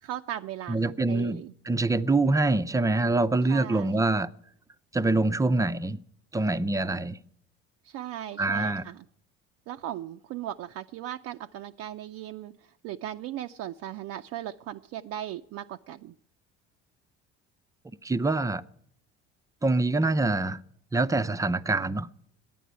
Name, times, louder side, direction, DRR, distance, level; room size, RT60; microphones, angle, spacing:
voice 1, 0.0-1.5 3.5-4.0 7.8-9.0 9.7-16.1, right 12 dB, 60° right, 0.5 m, -38 dB
voice 2, 0.7-4.3 4.9-6.0 6.3-7.2 8.4-8.8 18.0-18.6 19.6-20.6 20.9-22.1, right 2 dB, 10° right, 0.5 m, -25 dB
10.0 x 9.2 x 9.4 m
supercardioid pair, 80°, 29 cm